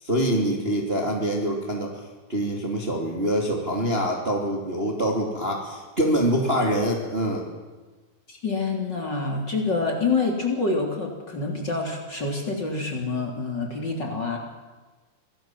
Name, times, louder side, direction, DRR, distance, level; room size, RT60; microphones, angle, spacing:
voice 1, 0.0-2.0 2.3-7.5, equal, 15° right, 1 dB, 2.8 m, -25 dB
voice 2, 8.3-14.4, left 3 dB, 30° left, 1 dB, 3.8 m, -27 dB
26.0 x 18.0 x 7.7 m, 1.3 s
omnidirectional pair, 4.2 m